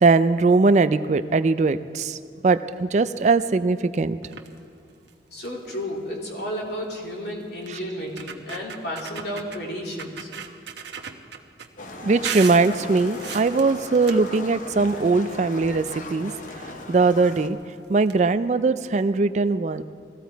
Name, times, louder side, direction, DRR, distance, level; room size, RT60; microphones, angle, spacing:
voice 1, 0.0-2.2 2.4-4.2 7.7-7.8 12.0-16.3 16.9-17.6 17.9-19.8, right 3 dB, 40° right, 13 dB, 0.4 m, -20 dB
sound 1, 4.2-4.6 5.1-5.2 5.4-5.7 6.9-7.0 7.7-7.8 8.1-9.6 10.0-11.7 12.2-15.0 15.3-16.4 17.3-17.4 17.7-17.8 18.1-18.2, right 7 dB, 75° right, 1.0 m, -36 dB
voice 2, 5.3-10.3, equal, 65° left, -2 dB, 2.8 m, -32 dB
Livestock farm animals working animals, 11.8-17.5, left 2 dB, 45° left, 0.9 m, -37 dB
19.5 x 15.5 x 4.6 m, 2.3 s
head